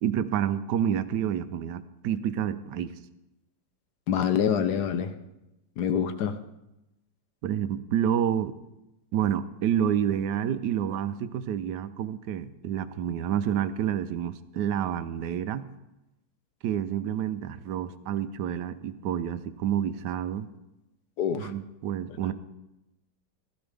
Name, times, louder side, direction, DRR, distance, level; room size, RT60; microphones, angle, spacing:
voice 1, 0.0-2.9 7.4-8.5 9.1-15.7 16.6-20.5 21.4-22.3, right 9 dB, 75° right, 12 dB, 1.2 m, -29 dB
voice 2, 4.1-5.1 5.8-6.4 21.2-21.5, left 8 dB, 70° left, 10 dB, 1.2 m, -26 dB
15.0 x 13.0 x 3.4 m, 0.94 s
omnidirectional pair, 2.0 m